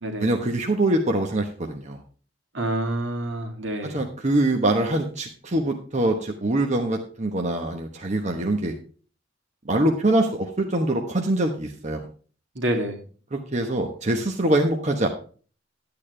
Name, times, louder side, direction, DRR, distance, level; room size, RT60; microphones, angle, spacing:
voice 1, 0.2-2.0 3.8-8.7 9.6-12.1 13.3-15.1, right 1 dB, 35° right, 3 dB, 1.1 m, -24 dB
voice 2, 2.5-4.0 12.5-13.0, right 1 dB, 70° right, 3 dB, 2.5 m, -27 dB
12.0 x 8.8 x 3.3 m, 0.40 s
head